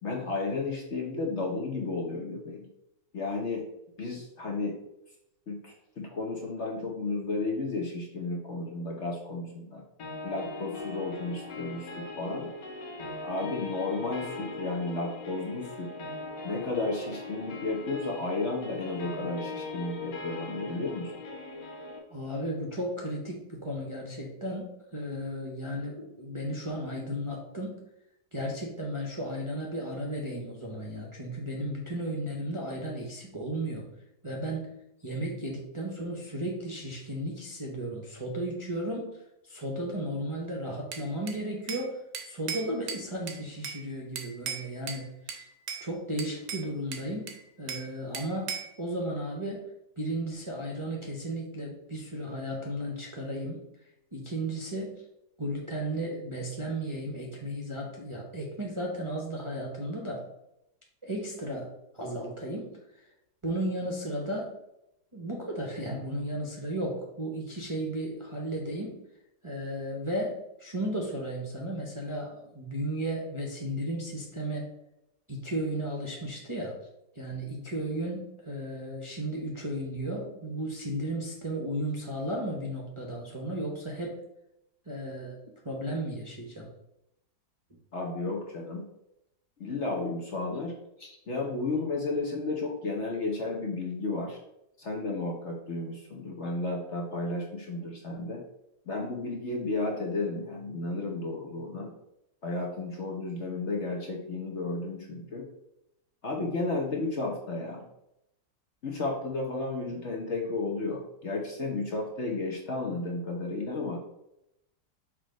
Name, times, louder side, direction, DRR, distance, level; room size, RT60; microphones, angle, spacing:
voice 1, 0.0-2.7 3.1-3.6 4.0-4.8 5.5-9.8 10.2-12.5 13.2-15.9 16.4-21.1 87.9-88.8 89.6-90.7 91.3-94.4 94.8-98.4 98.9-101.9 102.4-105.5 106.2-107.8 108.8-114.0, left 3 dB, 50° left, 0 dB, 1.0 m, -33 dB
sound 1, 10.0-22.0, left 3 dB, 80° left, 1.8 m, -40 dB
voice 2, 22.1-27.8 28.3-33.9 34.2-34.7 35.0-39.2 39.5-45.4 45.8-47.3 47.6-49.7 50.0-53.6 54.1-55.0 55.4-60.2 61.0-61.7 61.9-62.7 63.4-64.5 65.1-69.0 69.4-74.7 75.3-76.7 77.1-84.2 84.9-85.4 85.6-86.7 91.0-91.1, right 1 dB, 25° right, -3 dB, 0.8 m, -34 dB
Bell / Glass, 40.9-41.9 42.1-43.8 44.2-45.0 45.3-45.9 46.2-47.9 48.1-48.8, right 6 dB, 75° right, 1.4 m, -38 dB
6.2 x 3.1 x 5.1 m, 0.84 s
omnidirectional pair, 1.8 m